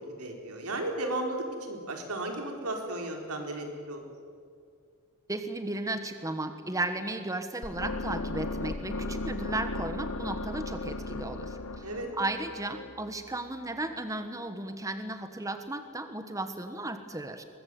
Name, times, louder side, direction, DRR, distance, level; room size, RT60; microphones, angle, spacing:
voice 1, 0.2-4.0 11.8-12.1, right 2 dB, 85° right, 2 dB, 4.6 m, -34 dB
voice 2, 5.3-11.9 12.2-17.4, right 2 dB, 15° right, 8 dB, 1.2 m, -35 dB
sound 1, 7.6-13.7, left 2 dB, 80° left, 1.6 m, -36 dB
23.0 x 21.0 x 9.3 m, 2.3 s
head